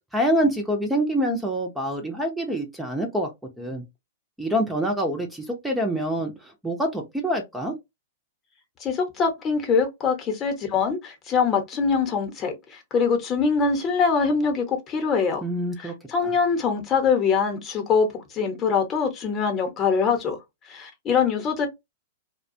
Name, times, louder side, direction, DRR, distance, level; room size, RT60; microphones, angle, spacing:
voice 1, 0.1-3.3 3.6-3.8 4.4-7.7 15.4-15.9 16.2-16.3, equal, 5° right, 0.6 m, -26 dB
voice 2, 8.8-15.4 15.8-20.4 20.7-21.7, left 5 dB, 30° left, 0.8 m, -23 dB
2.3 x 2.2 x 2.6 m
hypercardioid pair, 120°, 0 cm